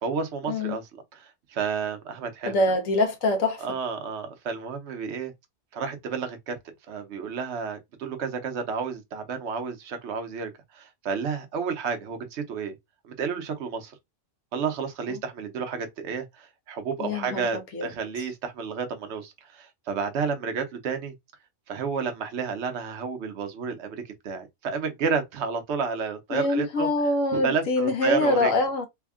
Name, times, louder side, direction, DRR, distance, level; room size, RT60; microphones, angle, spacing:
voice 1, 0.0-2.6 3.6-5.3 5.7-6.6 6.9-12.7 13.0-14.0 14.5-21.1 21.7-26.9 27.3-28.5, right 5 dB, 60° right, 1.0 m, -31 dB
voice 2, 2.4-3.6 17.0-17.9 26.3-28.9, left 2 dB, 75° left, 1.2 m, -24 dB
3.4 x 2.2 x 3.5 m
omnidirectional pair, 1.4 m